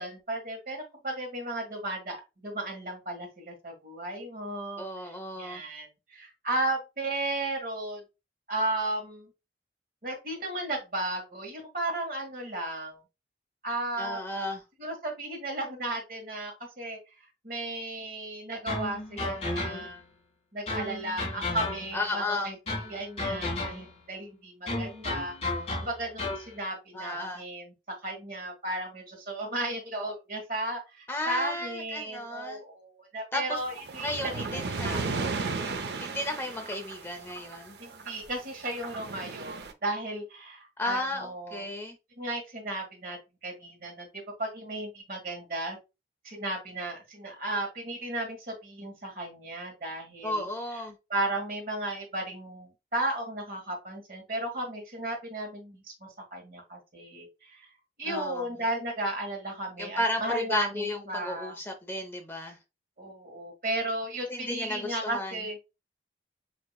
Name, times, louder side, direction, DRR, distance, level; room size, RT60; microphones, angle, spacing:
voice 1, 0.0-8.0 8.5-9.3 10.0-13.0 13.6-14.2 14.8-20.0 20.5-25.3 25.8-27.7 28.0-34.1 34.3-35.0 37.8-41.6 42.2-44.1 44.4-45.8 46.2-50.5 51.1-57.7 58.0-61.6 63.0-65.7, right 1 dB, 50° right, 1.6 m, -35 dB
voice 2, 4.8-5.6 14.0-14.6 21.9-22.6 26.9-27.4 31.1-32.6 33.3-33.6 34.0-35.1 36.0-37.8 40.8-42.0 50.2-50.9 58.0-58.5 59.8-62.6 64.3-65.4, left 1 dB, 15° left, 0.5 m, -33 dB
sound 1, 18.7-20.1 20.7-22.1 22.7-24.0 24.7-26.5, left 2 dB, 35° left, 1.7 m, -33 dB
sound 2, 33.6-38.3 38.6-39.7, right 4 dB, 70° right, 0.6 m, -35 dB
6.1 x 2.9 x 2.3 m
head